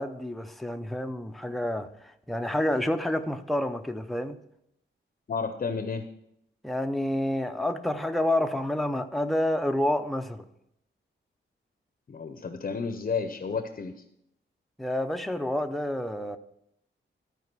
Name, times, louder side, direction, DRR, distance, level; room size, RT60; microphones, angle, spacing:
voice 1, 0.0-4.4 6.6-10.4 14.8-16.4, left 1 dB, ahead, 0.5 m, -29 dB
voice 2, 5.3-6.0 12.1-13.9, left 5 dB, 45° left, 0.6 m, -31 dB
12.5 x 4.8 x 6.0 m
wide cardioid pair, 160°, 20 cm